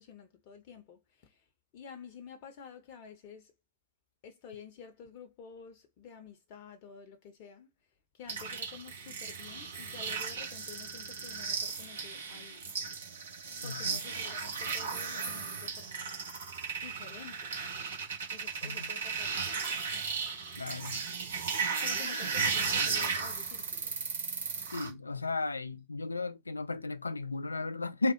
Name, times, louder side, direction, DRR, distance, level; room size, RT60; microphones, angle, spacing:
voice 1, 0.0-1.4 1.7-3.5 4.2-7.7 8.1-12.7 13.6-16.1 16.8-17.5 18.3-19.6 21.8-23.9, left 7 dB, 45° left, 0.7 m, -50 dB
sound 1, 8.3-24.9, right 5 dB, 65° right, 1.4 m, -35 dB
voice 2, 13.6-14.0 18.6-18.9 20.6-21.0 24.7-28.1, left 3 dB, 80° left, 0.3 m, -35 dB
3.5 x 2.3 x 4.3 m
figure-of-eight pair, 90°, 0 cm